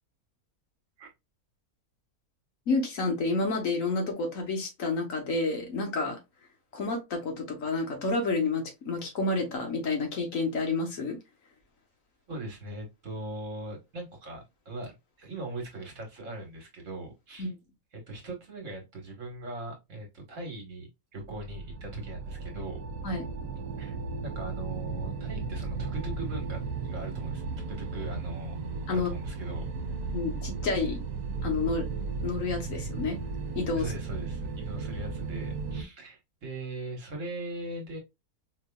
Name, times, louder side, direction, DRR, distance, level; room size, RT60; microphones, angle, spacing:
voice 1, 2.7-6.2 6.7-11.2 17.4-17.5 23.0-23.3 28.9-29.1 30.1-31.0 31.4-33.2 33.5-33.9, left 3 dB, 65° left, 3 dB, 1.5 m, -29 dB
voice 2, 12.3-17.5 17.9-22.8 23.8-24.0 24.2-27.4 27.7-28.6 28.9-29.7 33.7-38.0, right 2 dB, 60° right, 2 dB, 1.6 m, -40 dB
sound 1, 21.2-35.8, right 4 dB, 85° right, 1.1 m, -35 dB
4.5 x 2.8 x 2.2 m, 0.21 s
omnidirectional pair, 1.6 m